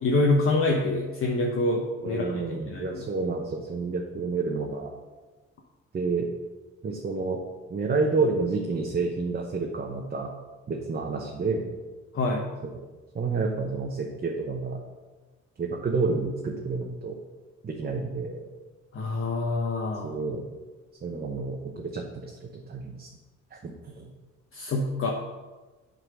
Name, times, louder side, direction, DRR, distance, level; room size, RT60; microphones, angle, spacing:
voice 1, 0.0-3.0 12.1-12.5 18.9-20.1 24.5-25.1, left 2 dB, 45° left, 0 dB, 1.0 m, -26 dB
voice 2, 2.0-4.9 5.9-6.3 6.8-7.4 7.7-10.3 10.7-11.7 12.6-12.7 13.1-14.8 15.6-17.2 17.6-18.5 20.0-20.5 21.0-23.1 23.5-24.1, right 4 dB, 30° right, 1 dB, 0.9 m, -29 dB
7.8 x 4.0 x 6.1 m, 1.2 s
cardioid pair, 90°, 30 cm